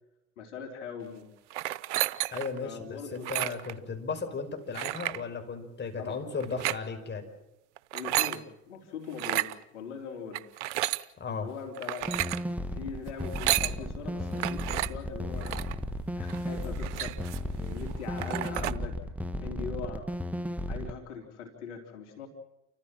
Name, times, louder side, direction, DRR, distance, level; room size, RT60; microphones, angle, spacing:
voice 1, 0.4-1.3 2.6-3.3 6.0-6.2 7.9-10.5 11.4-12.3 12.7-15.7 16.2-19.0 19.3-20.1 20.7-22.3, left 6 dB, 90° left, 2 dB, 3.8 m, -41 dB
sound 1, 1.5-2.6 3.1-3.7 4.7-5.2 6.4-6.8 7.8-8.4 9.1-9.5 10.3-11.0 11.8-12.4 13.2-13.7 14.4-14.9 15.4-15.7 16.3-16.4 16.6-17.5 17.9-18.0 18.2-18.7, right 15 dB, 90° right, 0.8 m, -31 dB
voice 2, 2.3-7.2 11.2-11.5, left 4 dB, 30° left, 5 dB, 5.4 m, -35 dB
sound 2, 12.0-20.9, equal, 5° right, 1.5 m, -35 dB
sound 3, 14.1-19.1, left 8 dB, 60° left, 1.7 m, -45 dB
30.0 x 14.5 x 7.5 m, 0.91 s
hypercardioid pair, 75°, 34 cm